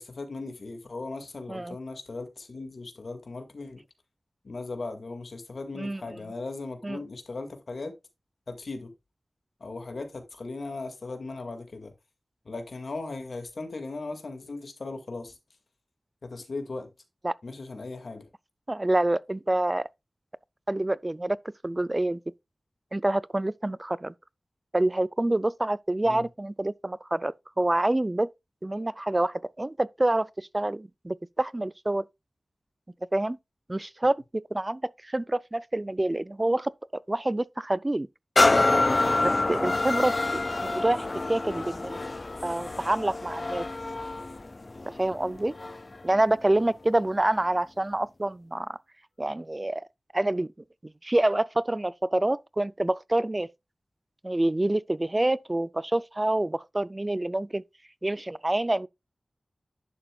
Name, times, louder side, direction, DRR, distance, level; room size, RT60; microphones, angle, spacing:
voice 1, 0.0-3.8 4.4-7.9 8.5-8.9 9.6-11.9 12.5-15.4 16.2-16.9 17.4-18.3 26.0-26.2, left 3 dB, 75° left, 2.0 m, -38 dB
voice 2, 18.7-19.9 20.7-21.4 21.6-22.2 22.9-24.1 24.7-28.3 28.6-32.0 33.1-33.4 33.7-34.2 34.5-38.1 39.2-42.0 42.4-43.7 44.9-45.5 46.0-48.8 49.2-49.9 50.1-50.5 50.8-53.5 54.2-57.6 58.0-58.9, right 1 dB, 25° right, 0.3 m, -27 dB
sound 1, 38.4-46.0 46.5-46.6, left 2 dB, 40° left, 0.4 m, -27 dB
11.0 x 6.9 x 2.3 m
wide cardioid pair, 75°, 0 cm